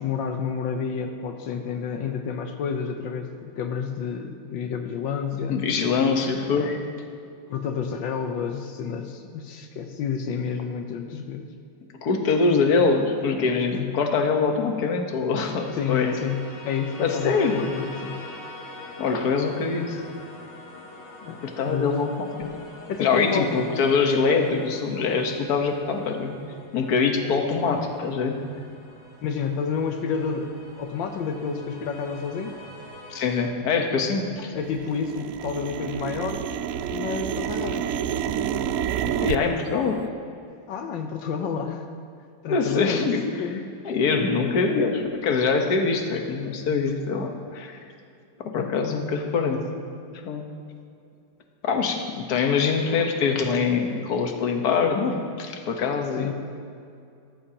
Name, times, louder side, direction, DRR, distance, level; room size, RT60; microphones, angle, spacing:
voice 1, 0.0-5.6 6.6-6.8 7.5-11.5 13.7-13.9 15.7-18.2 21.2-22.0 22.9-23.5 29.2-30.5 30.8-32.6 34.0-34.1 34.5-36.4 36.9-37.8 40.7-41.9 42.4-43.1 43.4-43.6 48.5-48.7 56.2-56.3, left 6 dB, 85° left, 5 dB, 1.5 m, -30 dB
voice 2, 5.5-6.8 12.0-16.1 17.0-17.6 19.0-20.1 21.4-22.5 23.0-26.4 26.7-28.4 33.1-34.5 39.0-40.0 42.5-43.5 43.9-47.7 48.4-49.6 50.1-50.4 51.6-56.3, left 4 dB, 55° left, 3 dB, 1.6 m, -24 dB
sound 1, 15.4-33.4, left 2 dB, 40° left, 2.1 m, -44 dB
sound 2, 28.5-28.6 29.2-29.4 30.0-30.3 30.7-30.8 31.1-31.6 31.9-34.2 34.5-39.4, right 9 dB, 90° right, 0.7 m, -30 dB
19.0 x 14.0 x 2.9 m, 2.5 s
omnidirectional pair, 2.0 m